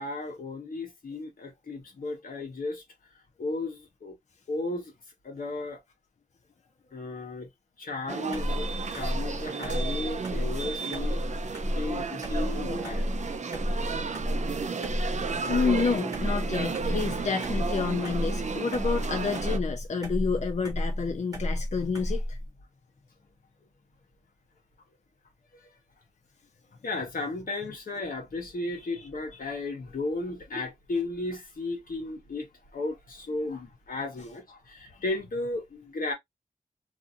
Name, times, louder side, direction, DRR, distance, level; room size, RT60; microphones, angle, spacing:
voice 1, 0.0-2.8 3.4-4.2 4.5-4.9 5.2-5.8 6.9-7.5 7.8-11.2 11.7-13.1 25.5-25.7 26.8-36.1, left 2 dB, 90° left, 1.0 m, -34 dB
sound 1, 8.1-19.6, right 5 dB, 55° right, 0.4 m, -33 dB
sound 2, 8.3-22.5, equal, 25° right, 1.1 m, -32 dB
voice 2, 15.5-22.4, left 5 dB, 55° left, 0.5 m, -29 dB
2.6 x 2.6 x 2.4 m
wide cardioid pair, 85°, 14 cm